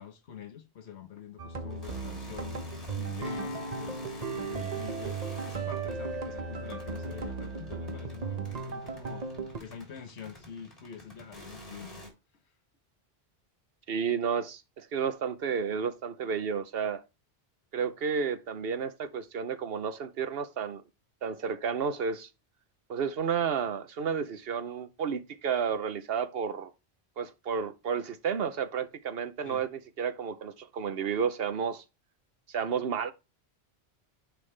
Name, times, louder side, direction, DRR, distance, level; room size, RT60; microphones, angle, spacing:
voice 1, 0.0-4.0 4.3-9.3 9.6-12.0 12.3-12.5 29.4-29.6, left 8 dB, 90° left, 1.3 m, -46 dB
sound 1, 1.4-9.6, right 4 dB, 40° right, 0.9 m, -36 dB
sound 2, 1.7-12.1, left 1 dB, 35° left, 3.7 m, -49 dB
Acoustic guitar, 3.2-8.4, left 7 dB, 50° left, 0.9 m, -50 dB
voice 2, 13.9-17.0 17.7-20.8 21.2-22.3 22.9-26.7 27.2-31.8 32.5-33.1, right 6 dB, 65° right, 1.0 m, -31 dB
10.5 x 5.4 x 3.3 m
omnidirectional pair, 1.1 m